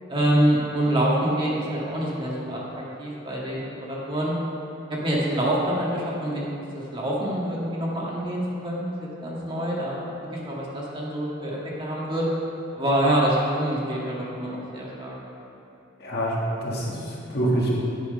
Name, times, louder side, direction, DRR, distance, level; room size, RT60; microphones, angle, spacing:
voice 1, 0.1-4.3 4.9-6.5 6.9-12.2 12.7-15.2, right 1 dB, 25° right, -5 dB, 1.7 m, -26 dB
voice 2, 16.0-17.7, right 1 dB, 55° left, -4 dB, 1.8 m, -26 dB
9.9 x 6.3 x 5.3 m, 2.8 s
head